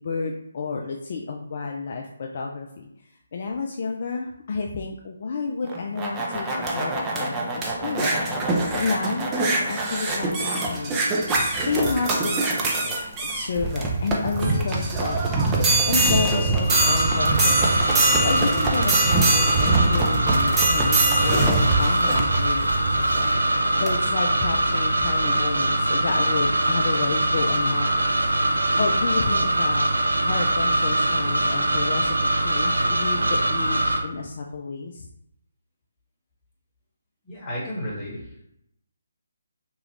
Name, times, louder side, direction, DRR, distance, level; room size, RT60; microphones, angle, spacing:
voice 1, 0.0-2.9 3.3-8.2 8.7-11.2 11.6-15.2 15.9-17.7 18.2-28.1 28.8-29.9 30.2-35.1, left 4 dB, 45° left, 1 dB, 0.3 m, -30 dB
sound 1, 5.6-23.3 23.9-24.0, right 2 dB, 15° right, 0.5 m, -23 dB
sound 2, 16.7-34.0, right 1 dB, 75° right, 0.4 m, -22 dB
voice 2, 37.2-38.4, equal, 15° left, -7 dB, 1.1 m, -33 dB
2.9 x 2.3 x 3.2 m, 0.77 s
figure-of-eight pair, 145°, 0 cm